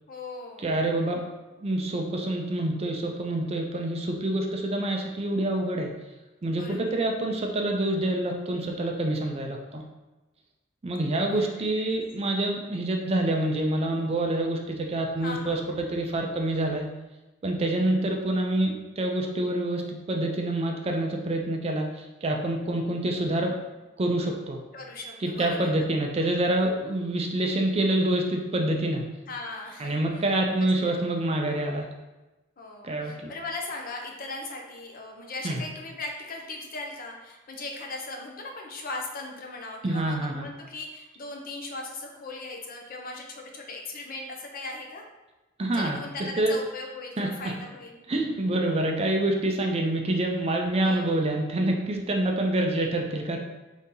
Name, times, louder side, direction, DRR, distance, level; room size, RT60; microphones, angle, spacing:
voice 1, 0.1-0.7 6.5-7.0 11.3-11.9 15.2-15.6 24.7-25.7 29.3-30.2 30.6-31.0 32.6-45.0 45.7-48.0 50.8-51.2, left 2 dB, 45° left, 1 dB, 0.6 m, -38 dB
voice 2, 0.6-1.3 1.6-5.9 6.4-9.8 10.8-16.9 17.4-23.5 24.0-24.6 25.2-29.1 29.8-31.9 32.8-33.3 35.4-35.6 39.8-40.5 45.6-46.0 46.4-46.6 47.2-47.3 48.1-53.4, right 1 dB, 30° right, 2 dB, 0.4 m, -27 dB
4.0 x 2.7 x 3.7 m, 1.1 s
head